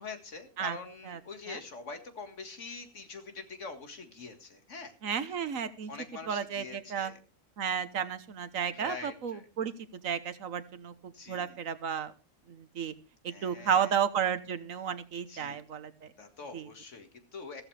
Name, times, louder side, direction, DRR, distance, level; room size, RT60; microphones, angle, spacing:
voice 1, 0.0-4.9 5.2-5.4 5.9-7.2 8.7-9.5 11.1-11.6 13.3-14.0 15.3-15.6 16.2-17.7, left 4 dB, 65° left, 7 dB, 2.2 m, -44 dB
voice 2, 5.0-5.9 6.3-7.1 7.6-9.7 10.0-10.9 11.3-12.1 12.5-12.9 13.2-15.9 16.5-16.7, right 8 dB, 80° right, 13 dB, 1.5 m, -32 dB
15.5 x 13.5 x 3.3 m, 0.32 s
omnidirectional pair, 1.4 m